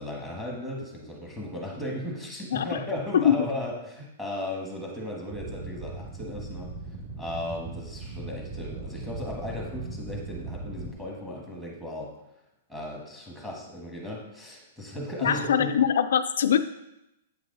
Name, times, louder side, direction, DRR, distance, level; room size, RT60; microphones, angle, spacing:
voice 1, 0.0-6.7 7.2-12.1 12.7-15.7, left 1 dB, 5° right, -2 dB, 1.3 m, -36 dB
sound 1, 5.3-10.9, right 3 dB, 35° right, 1.5 m, -38 dB
voice 2, 15.2-16.6, left 9 dB, 75° left, 10 dB, 0.3 m, -23 dB
8.2 x 4.7 x 3.8 m, 0.89 s
hypercardioid pair, 165°, 0 cm